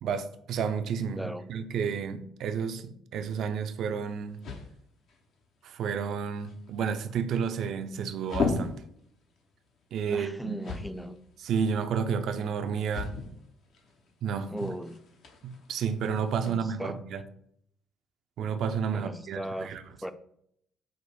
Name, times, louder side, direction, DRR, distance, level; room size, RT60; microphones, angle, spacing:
voice 1, 0.0-4.4 5.6-8.8 9.9-10.6 11.4-13.1 14.2-14.7 15.4-17.2 18.4-19.8, right 6 dB, 65° right, 0.4 m, -31 dB
sound 1, 3.1-16.5, left 4 dB, 65° left, 0.8 m, -39 dB
voice 2, 10.1-11.2 14.5-15.0 16.4-17.0 18.9-19.7 20.0-20.1, equal, ahead, 0.4 m, -37 dB
4.9 x 2.1 x 4.6 m
hypercardioid pair, 60°, 0 cm